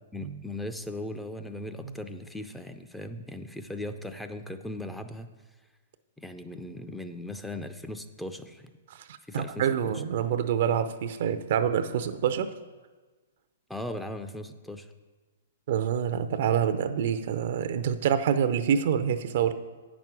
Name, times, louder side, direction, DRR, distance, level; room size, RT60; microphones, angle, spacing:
voice 1, 0.1-5.3 6.2-8.6 9.3-9.9 13.7-14.9, left 1 dB, 5° left, 7 dB, 0.5 m, -38 dB
voice 2, 8.9-12.5 15.7-19.5, right 8 dB, 60° right, 10 dB, 0.6 m, -27 dB
8.9 x 6.1 x 6.1 m, 1.3 s
hypercardioid pair, 120°, 0 cm